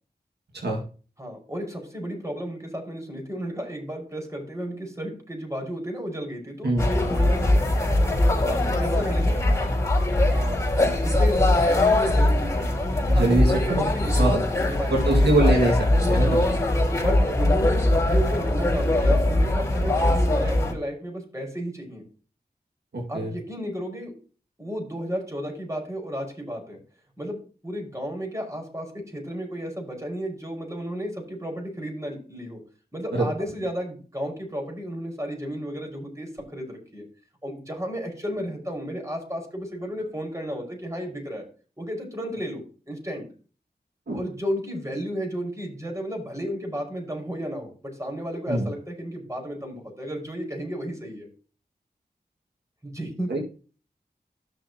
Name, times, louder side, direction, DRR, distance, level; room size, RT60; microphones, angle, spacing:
voice 1, 1.2-7.9 8.4-9.8 10.3-10.6 11.0-14.3 14.6-15.4 16.9-22.0 23.1-24.1 24.6-26.8 27.2-27.4 27.6-32.6 32.9-37.0 37.4-41.4 41.8-43.3 44.1-47.7 48.0-51.3 52.8-53.3, equal, 20° right, 2 dB, 5.2 m, -33 dB
sound 1, 6.8-20.7, left 1 dB, 15° left, 3.9 m, -21 dB
voice 2, 13.1-13.9 14.2-14.4 14.9-16.5 22.9-23.3 33.1-33.3 44.1-44.2 48.5-48.7 53.3-53.4, right 1 dB, 80° right, 0 dB, 2.0 m, -23 dB
13.0 x 6.8 x 2.9 m, 0.38 s
cardioid pair, 50°, 17 cm